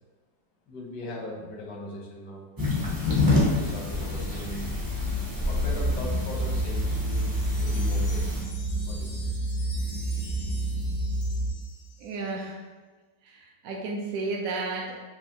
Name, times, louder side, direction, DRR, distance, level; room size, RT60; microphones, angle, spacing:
voice 1, 0.7-2.4 2.9-4.7 5.4-7.3 7.6-8.4 8.9-9.3, left 1 dB, 90° left, -2 dB, 1.5 m, -39 dB
sound 1, 2.6-8.4, left 2 dB, 30° right, 0.3 m, -28 dB
sound 2, 5.6-11.5, right 1 dB, 90° right, 1.5 m, -29 dB
Wind chime, 6.9-12.3, left 2 dB, 60° left, 0.6 m, -47 dB
voice 2, 12.0-12.6 13.2-15.0, right 3 dB, 70° right, 0 dB, 0.9 m, -33 dB
5.5 x 2.6 x 2.8 m, 1.3 s
omnidirectional pair, 1.8 m